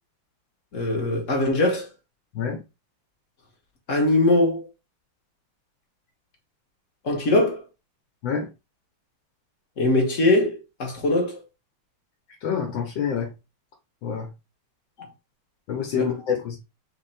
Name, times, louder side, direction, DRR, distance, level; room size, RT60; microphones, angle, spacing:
voice 1, 0.7-1.9 3.9-4.7 7.0-7.6 9.8-11.4 15.9-16.1, left 2 dB, 40° left, 1.4 m, -21 dB
voice 2, 12.4-13.3 14.0-14.3 15.7-16.6, left 7 dB, 65° left, 1.7 m, -27 dB
4.1 x 2.9 x 4.2 m
omnidirectional pair, 2.4 m